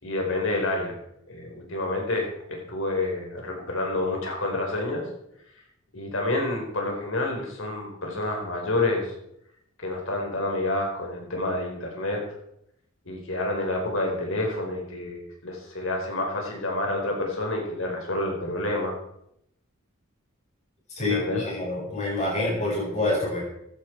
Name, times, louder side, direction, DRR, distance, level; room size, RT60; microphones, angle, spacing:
voice 1, 0.0-0.9 1.3-5.0 5.9-9.1 9.8-12.2 13.0-19.0 21.0-21.4, left 2 dB, 65° left, 1 dB, 4.4 m, -28 dB
voice 2, 21.0-23.4, left 2 dB, 35° left, -3 dB, 6.8 m, -27 dB
15.0 x 11.5 x 4.6 m, 0.77 s
head